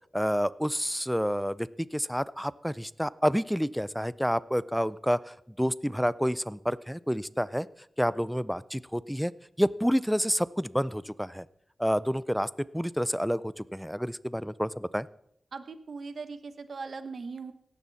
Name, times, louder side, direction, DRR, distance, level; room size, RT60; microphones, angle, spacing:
voice 1, 0.1-7.7 8.0-9.3 9.6-11.5 11.8-15.1, equal, ahead, 18 dB, 0.5 m, -29 dB
voice 2, 15.5-17.5, right 4 dB, 75° right, 10 dB, 1.2 m, -39 dB
17.5 x 14.0 x 4.1 m, 0.72 s
wide cardioid pair, 75°, 0 cm